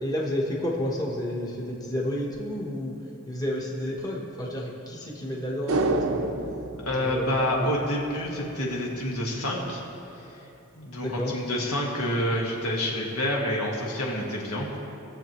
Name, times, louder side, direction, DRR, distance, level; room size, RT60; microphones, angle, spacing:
voice 1, 0.0-2.9 3.3-6.3 7.0-7.7 11.0-11.4, left 1 dB, 15° left, -2 dB, 1.0 m, -31 dB
sound 1, 5.7-8.2 8.4-8.5, right 2 dB, 65° right, 0.7 m, -29 dB
voice 2, 6.8-9.8 10.8-14.7, left 1 dB, 80° left, -2 dB, 1.7 m, -28 dB
18.5 x 7.2 x 3.1 m, 3.0 s
head